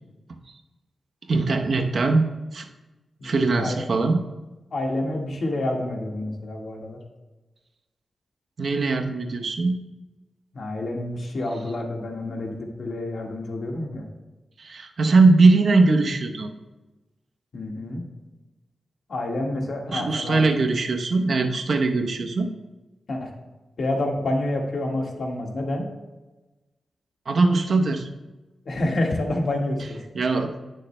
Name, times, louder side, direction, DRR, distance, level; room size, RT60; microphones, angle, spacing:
voice 1, 1.3-2.3 2.5-2.7 3.2-4.2 8.6-9.8 14.6-16.5 19.9-22.5 27.3-28.1 30.1-30.5, right 3 dB, 65° right, 4 dB, 0.8 m, -20 dB
voice 2, 3.2-3.8 4.7-7.0 10.5-14.1 17.5-18.0 19.1-20.7 23.1-23.3 23.8-25.9 28.6-30.0, left 1 dB, 65° left, 1 dB, 1.6 m, -28 dB
16.5 x 6.5 x 2.2 m, 1.1 s
cardioid pair, 70°, 0 cm